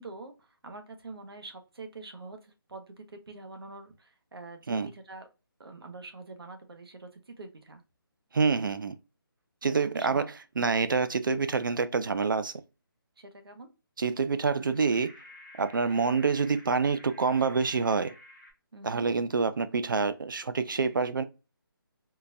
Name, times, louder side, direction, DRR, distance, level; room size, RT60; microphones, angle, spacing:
voice 1, 0.0-5.3 5.6-7.8 9.6-10.3 13.2-13.7 18.7-19.0, right 3 dB, 90° right, 0.9 m, -45 dB
voice 2, 8.3-9.0 9.6-10.2 10.6-12.5 14.0-15.1 15.6-18.1 18.8-21.2, right 4 dB, 60° right, 0.4 m, -27 dB
sound 1, 14.5-18.5, left 1 dB, 5° left, 0.4 m, -52 dB
3.7 x 2.2 x 2.6 m
hypercardioid pair, 175°, 12 cm